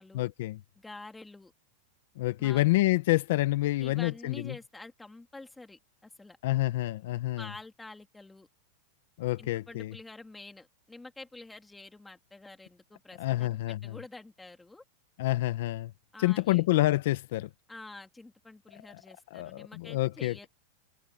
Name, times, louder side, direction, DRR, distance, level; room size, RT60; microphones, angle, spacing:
voice 1, 0.1-0.6 2.2-4.5 6.4-7.4 9.2-9.9 13.2-13.9 15.2-15.9 16.2-17.5 19.3-20.3, left 17 dB, 60° left, 0.8 m, -28 dB
voice 2, 0.8-1.5 2.4-2.7 3.8-6.4 7.4-8.5 9.4-13.6 13.8-14.8 16.1-16.6 17.7-20.5, left 2 dB, 5° left, 2.8 m, -48 dB
supercardioid pair, 170°, 0 cm